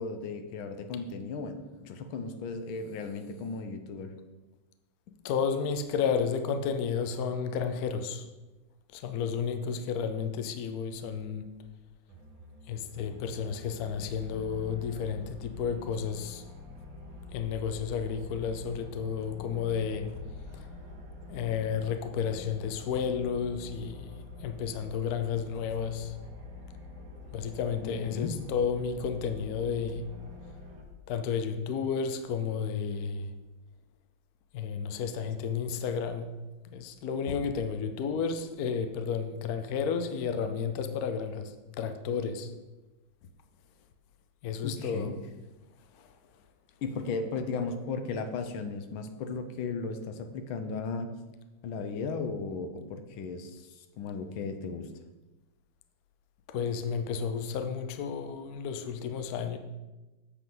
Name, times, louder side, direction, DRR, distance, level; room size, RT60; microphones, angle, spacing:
voice 1, 0.0-4.1 27.8-28.3 44.6-45.1 46.8-51.1 51.6-54.9, left 4 dB, 85° left, 1.6 m, -36 dB
voice 2, 5.2-8.3 8.9-11.5 12.7-16.4 17.3-20.2 20.5-20.7 21.3-24.1 24.4-26.2 27.3-30.1 31.1-33.3 34.5-36.3 36.7-42.5 44.4-45.1 45.9-46.2 56.5-59.6, left 6 dB, 65° left, 0.9 m, -32 dB
sound 1, 12.1-30.8, left 3 dB, 50° right, 1.4 m, -46 dB
8.2 x 6.9 x 3.9 m
omnidirectional pair, 2.2 m